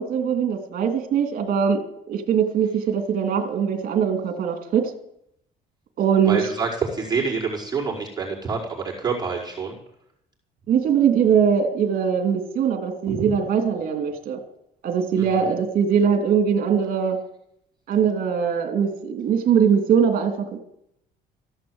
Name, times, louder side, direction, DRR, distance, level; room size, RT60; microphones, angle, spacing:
voice 1, 0.0-1.8 2.1-4.9 6.0-6.4 10.7-14.4 14.8-17.2 17.9-20.6, right 7 dB, 60° right, 5 dB, 2.8 m, -21 dB
voice 2, 6.2-9.8 13.1-13.4 15.1-15.5, right 5 dB, 25° right, -5 dB, 4.9 m, -27 dB
15.0 x 11.0 x 8.0 m, 0.77 s
cardioid pair, 110°, 17 cm